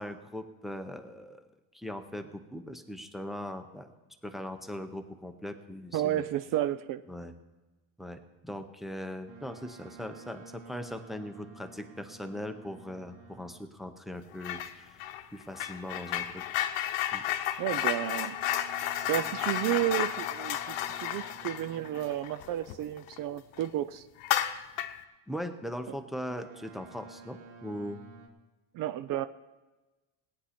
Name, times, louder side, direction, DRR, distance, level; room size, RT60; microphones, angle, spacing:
voice 1, 0.0-1.4 1.7-3.9 4.2-6.2 7.1-7.3 8.0-15.0 15.3-16.4 17.1-17.2 25.3-28.0, equal, ahead, 6 dB, 0.6 m, -40 dB
voice 2, 5.9-7.0 17.6-18.4 19.1-24.1 28.7-29.3, right 12 dB, 45° right, 12 dB, 0.5 m, -32 dB
Boat Water vehicle, 9.3-13.8 17.8-22.3 26.3-28.3, right 4 dB, 75° right, 3.1 m, -52 dB
sound 1, 14.4-14.7 15.0-23.2 23.5-23.7 24.2-25.0, left 12 dB, 85° left, 1.0 m, -32 dB
18.5 x 9.5 x 4.3 m, 1.1 s
cardioid pair, 160°, 45 cm